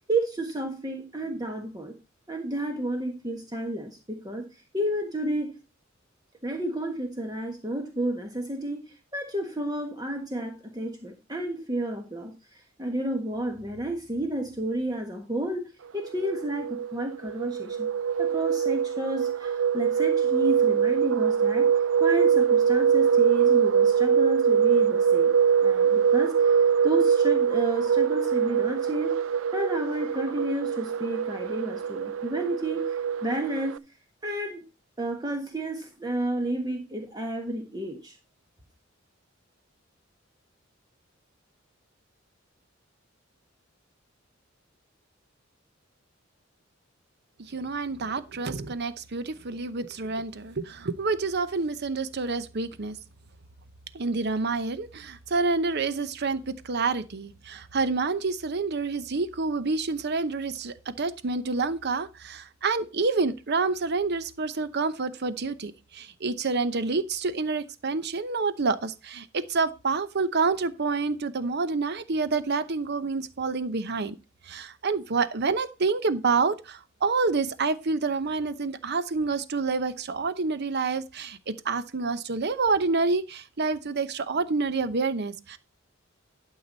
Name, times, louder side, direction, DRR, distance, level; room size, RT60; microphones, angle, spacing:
voice 1, 0.1-1.9 2.3-4.5 4.7-5.6 6.4-12.3 12.8-17.9 18.2-21.7 22.0-25.3 25.6-26.6 26.8-29.2 29.5-32.8 33.2-33.8 34.2-34.6 35.0-38.1, right 1 dB, 20° right, 1.5 m, -31 dB
sound 1, 16.0-33.8, right 7 dB, 70° right, 0.4 m, -23 dB
voice 2, 47.5-53.0 53.9-74.1 74.4-85.6, right 4 dB, 55° right, 0.8 m, -28 dB
12.0 x 5.8 x 4.0 m
head